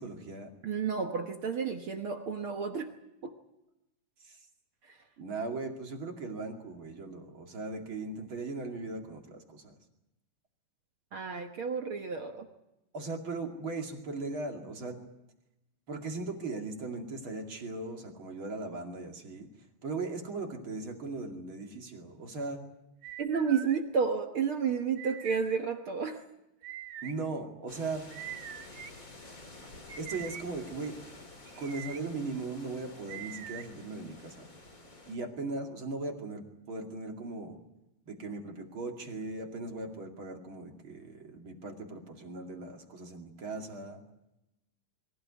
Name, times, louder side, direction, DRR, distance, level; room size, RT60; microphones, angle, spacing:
voice 1, 0.0-0.5 4.2-4.4 5.2-9.7 12.9-15.0 15.9-19.5 19.8-22.6 27.0-28.1 30.0-31.0 31.6-34.5 35.1-37.6 38.1-44.0, right 3 dB, 40° right, 2 dB, 2.8 m, -38 dB
voice 2, 0.6-2.9 3.2-3.3 11.1-12.4 23.2-26.2, right 6 dB, 60° right, 5 dB, 1.4 m, -31 dB
sound 1, 23.0-23.8 24.9-25.6 26.6-27.1 28.1-28.9 29.9-30.4 31.5-32.0 33.1-33.7, right 10 dB, 80° right, 1.2 m, -43 dB
sound 2, 27.7-35.2, left 2 dB, 25° left, 2.9 m, -50 dB
23.5 x 15.5 x 9.6 m, 0.91 s
omnidirectional pair, 4.1 m